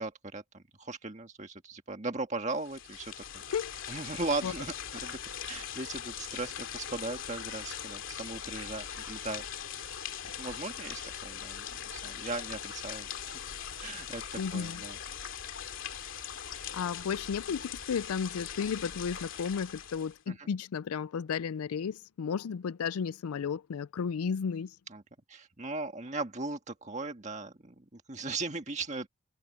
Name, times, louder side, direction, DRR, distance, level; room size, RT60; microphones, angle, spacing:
voice 1, 0.0-3.4 3.9-4.7 5.0-5.2 5.5-9.5 9.8-10.0 10.4-13.4 13.8-15.0 20.3-20.5 24.9-25.0 25.3-29.1, right 3 dB, 35° right, 1.7 m, -38 dB
sound 1, 2.5-20.2, left 8 dB, 65° left, 2.5 m, -41 dB
voice 2, 14.4-14.8 16.7-24.7, left 6 dB, 90° left, 0.4 m, -33 dB
head